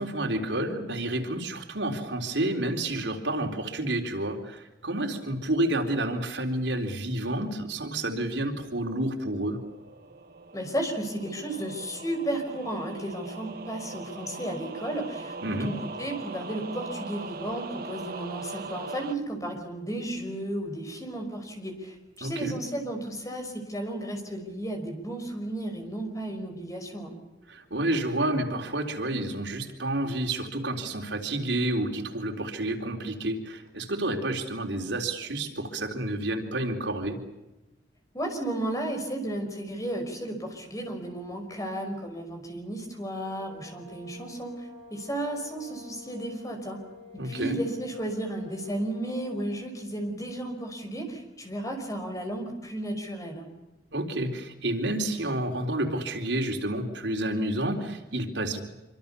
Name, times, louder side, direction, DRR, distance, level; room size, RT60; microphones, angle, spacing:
voice 1, 0.0-9.6 15.4-15.7 22.2-22.6 27.5-37.2 47.2-47.6 53.9-58.6, right 1 dB, 90° right, 3 dB, 4.0 m, -30 dB
sound 1, 8.9-19.2, right 3 dB, 55° right, 1.5 m, -41 dB
voice 2, 10.5-27.1 38.1-46.8 47.2-53.5, right 1 dB, 20° left, 4 dB, 5.6 m, -33 dB
sound 2, 43.0-49.6, left 3 dB, 85° left, 7.8 m, -50 dB
26.0 x 25.5 x 7.0 m, 1.0 s
head